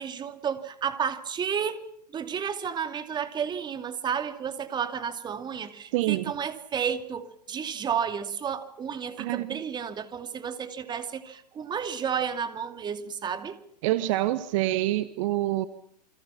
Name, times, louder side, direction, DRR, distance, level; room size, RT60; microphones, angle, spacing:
voice 1, 0.0-1.8 2.1-13.6, right 7 dB, 20° right, 10 dB, 2.5 m, -32 dB
voice 2, 5.9-6.3 9.2-9.6 13.8-15.7, right 16 dB, 50° right, 14 dB, 1.4 m, -26 dB
29.0 x 25.0 x 5.9 m, 0.65 s
hypercardioid pair, 110°, 21 cm